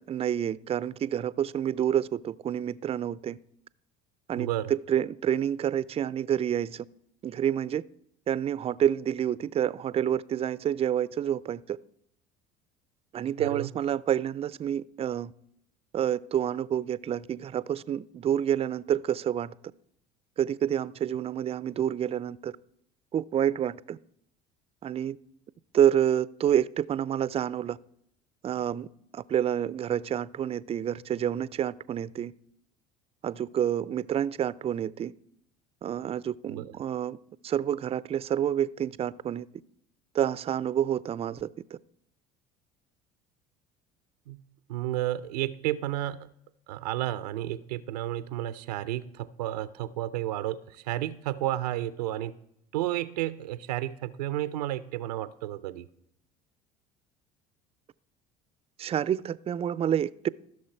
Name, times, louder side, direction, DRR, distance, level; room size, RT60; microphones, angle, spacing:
voice 1, 0.0-3.4 4.3-6.9 7.2-7.8 8.3-11.8 13.1-15.3 15.9-19.5 20.4-22.5 23.1-24.0 24.8-25.2 25.7-27.8 28.4-28.9 29.1-32.3 33.2-35.1 35.8-37.2 37.4-39.5 40.1-41.5 58.8-60.3, right 10 dB, 30° right, 20 dB, 0.4 m, -28 dB
voice 2, 4.4-4.7 13.4-13.7 36.5-36.7 44.3-44.4 44.7-46.3 46.7-52.3 52.7-55.9, right 14 dB, 90° right, 15 dB, 0.5 m, -32 dB
15.0 x 6.4 x 4.4 m, 0.74 s
hypercardioid pair, 75°, 20 cm